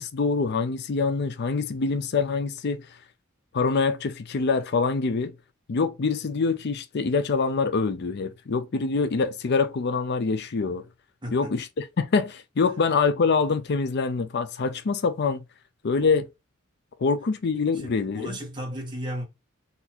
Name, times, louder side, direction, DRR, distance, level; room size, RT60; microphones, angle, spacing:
voice 1, 0.0-3.0 3.5-5.3 5.7-10.8 11.3-15.4 15.8-16.3 17.0-18.4, left 4 dB, 55° left, 0.5 m, -25 dB
voice 2, 11.2-11.6 15.9-16.1 17.7-19.2, equal, 20° right, 1.6 m, -35 dB
4.1 x 2.8 x 4.3 m
head